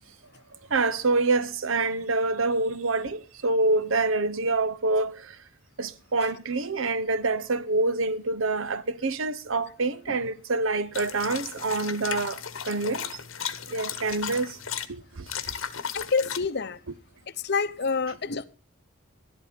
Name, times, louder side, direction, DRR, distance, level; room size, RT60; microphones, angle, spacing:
voice 1, 0.7-5.4 5.8-13.2 13.7-14.6 14.9-15.3, right 3 dB, 70° right, 0.9 m, -26 dB
sound 1, 10.9-14.9 15.3-16.4, left 8 dB, 75° left, 1.1 m, -35 dB
voice 2, 15.9-16.8 17.4-18.5, left 4 dB, 55° left, 0.8 m, -27 dB
12.5 x 11.0 x 5.1 m
head